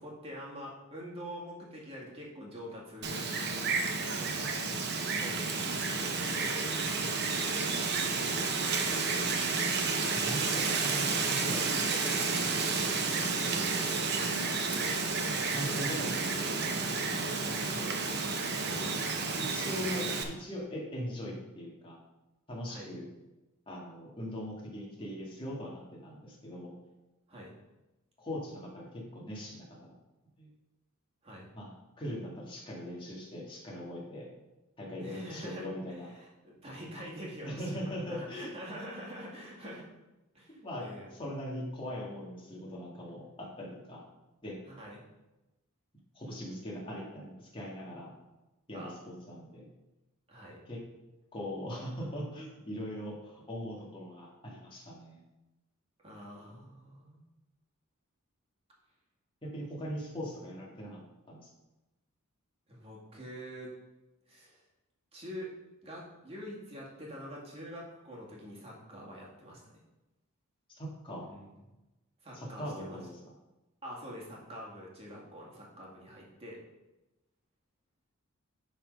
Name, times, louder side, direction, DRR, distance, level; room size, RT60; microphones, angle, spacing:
voice 1, 0.0-3.3 4.2-4.6 5.2-8.3 12.8-13.0 18.6-18.9 19.6-19.7 22.7-22.9 27.3-27.5 31.2-31.5 35.0-39.9 40.3-41.1 44.7-45.0 48.7-49.0 50.3-50.6 56.0-57.2 62.7-63.7 64.3-64.6 65.1-65.5 65.8-69.7 71.2-71.5 72.2-73.0 73.8-76.6, equal, 25° right, -3 dB, 2.0 m, -46 dB
Wind, 3.0-20.2, right 4 dB, 50° right, 0.9 m, -31 dB
voice 2, 10.1-12.1 13.6-14.3 15.5-16.8 17.6-18.0 19.4-22.0 22.5-23.1 23.7-26.7 28.2-29.7 30.4-30.5 31.5-34.3 34.8-36.1 37.4-38.5 40.5-44.0 44.4-44.6 46.1-48.1 48.7-49.7 50.7-50.8 51.3-55.2 59.4-61.0 61.3-61.5 70.7-71.3 72.3-73.2, equal, 25° left, -3 dB, 2.1 m, -40 dB
10.0 x 4.2 x 5.3 m, 1.0 s
head